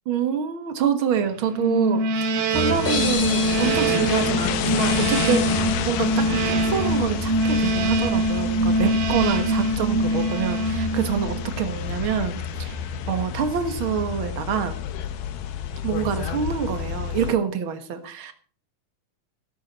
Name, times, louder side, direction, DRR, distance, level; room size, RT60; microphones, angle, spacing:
voice 1, 0.0-14.8 15.8-18.3, right 7 dB, 55° right, 9 dB, 1.5 m, -26 dB
sound 1, 1.5-11.5, right 2 dB, 90° right, 3.5 m, -24 dB
sound 2, 2.5-17.3, left 8 dB, 85° left, 3.1 m, -29 dB
sound 3, 2.8-5.6, left 4 dB, 35° left, 1.0 m, -32 dB
15.0 x 12.5 x 4.2 m, 0.43 s
omnidirectional pair, 4.2 m